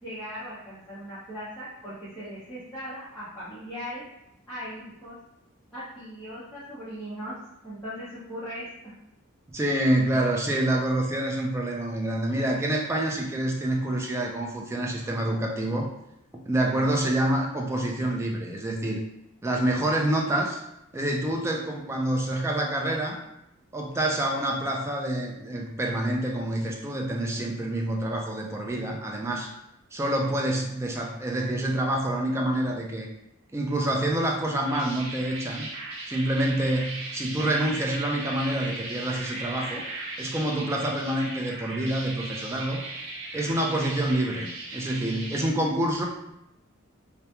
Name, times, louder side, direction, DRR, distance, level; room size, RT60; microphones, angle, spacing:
voice 1, 0.0-4.0 4.5-5.2 5.7-7.3 7.6-8.9, equal, 5° left, -15 dB, 0.7 m, -39 dB
voice 2, 9.5-15.9 16.5-19.0 19.4-20.6 20.9-23.2 23.7-29.5 29.9-33.1 33.5-35.7 36.1-39.8 40.2-42.8 43.3-46.1, right 1 dB, 10° right, 0 dB, 0.3 m, -27 dB
sound 1, 34.4-45.5, right 2 dB, 65° right, 0.6 m, -37 dB
2.2 x 2.1 x 2.8 m, 0.84 s
head